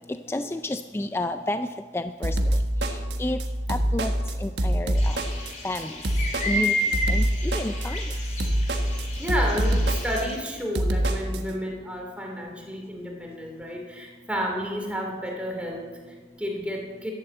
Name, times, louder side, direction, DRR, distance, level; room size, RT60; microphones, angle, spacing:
voice 1, 0.3-1.7 1.9-2.6 2.9-3.4 3.7-4.1 4.4-5.2 5.6-6.0 6.5-6.8 7.1-8.0, left 1 dB, 15° left, 9 dB, 0.3 m, -30 dB
sound 1, 2.2-11.4, right 1 dB, 80° right, 1.4 m, -25 dB
sound 2, 5.0-10.4, left 1 dB, 40° left, 2.8 m, -31 dB
voice 2, 9.2-17.1, equal, 5° right, 0 dB, 2.5 m, -31 dB
12.0 x 11.0 x 7.9 m, 1.5 s
head